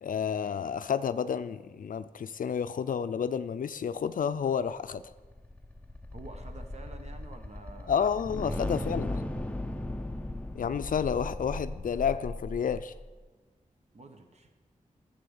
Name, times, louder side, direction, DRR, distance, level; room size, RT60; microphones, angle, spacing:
voice 1, 0.0-5.0 7.9-9.2 10.5-12.9, left 7 dB, 75° left, 12 dB, 0.4 m, -30 dB
sound 1, 4.7-13.1, left 1 dB, 10° left, 0.7 m, -37 dB
voice 2, 6.1-8.0 8.4-8.8 13.9-14.5, right 3 dB, 50° right, 5 dB, 1.2 m, -49 dB
15.0 x 6.9 x 7.1 m, 1.3 s
wide cardioid pair, 105°, 14 cm